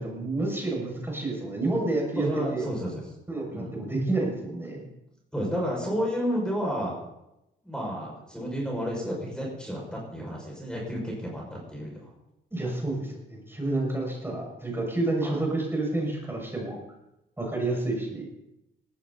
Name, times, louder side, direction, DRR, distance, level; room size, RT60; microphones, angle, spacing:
voice 1, 0.0-2.7 3.3-4.9 12.5-16.8 17.4-18.3, right 2 dB, 10° right, -1 dB, 6.5 m, -29 dB
voice 2, 2.2-3.0 3.5-3.8 5.3-6.9 7.6-12.1 15.2-15.4, equal, 5° left, -2 dB, 6.3 m, -31 dB
18.0 x 15.0 x 4.2 m, 0.89 s
cardioid pair, 90°, 20 cm